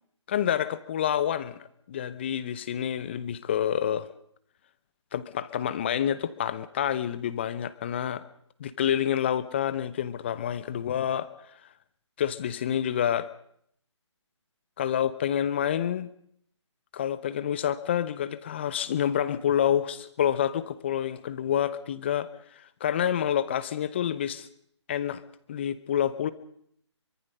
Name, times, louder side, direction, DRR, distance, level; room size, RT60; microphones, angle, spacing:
voice 1, 0.3-1.6 1.9-4.1 5.1-8.2 8.6-11.3 12.2-13.3 14.8-16.1 16.9-22.3 22.6-24.5 24.9-25.2 25.5-26.3, left 9 dB, 20° left, 16 dB, 0.8 m, -28 dB
24.0 x 22.0 x 5.4 m, 0.66 s
figure-of-eight pair, 160°, 16 cm